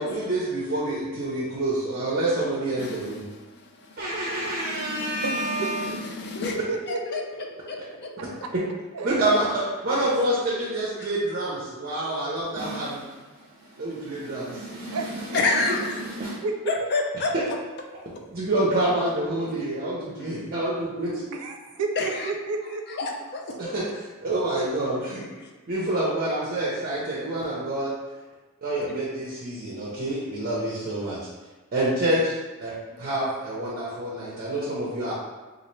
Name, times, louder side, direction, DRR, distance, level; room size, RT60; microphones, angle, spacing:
voice 1, 0.0-3.2 4.0-5.8 9.0-13.2 13.6-16.4 17.3-17.4 18.3-21.1 23.6-25.2 25.7-27.9 28.6-31.2 31.7-32.7 33.0-35.1, right 1 dB, 40° right, -7 dB, 0.6 m, -27 dB
voice 2, 4.5-5.3 6.1-6.6 7.1-7.2 7.7-8.1 15.3-16.0 16.7-17.3 20.2-20.3 22.0-22.1 23.0-23.7 28.9-29.0, left 3 dB, 50° left, 1 dB, 0.5 m, -28 dB
voice 3, 5.2-6.0 6.7-7.7 8.4-8.5 8.9-9.1 10.2-10.9 14.9-15.9 16.4-16.9 18.5-19.8 21.3-23.0 25.3-25.4 32.9-33.1, right 4 dB, 85° right, 3 dB, 0.5 m, -34 dB
4.1 x 2.5 x 3.1 m, 1.2 s
head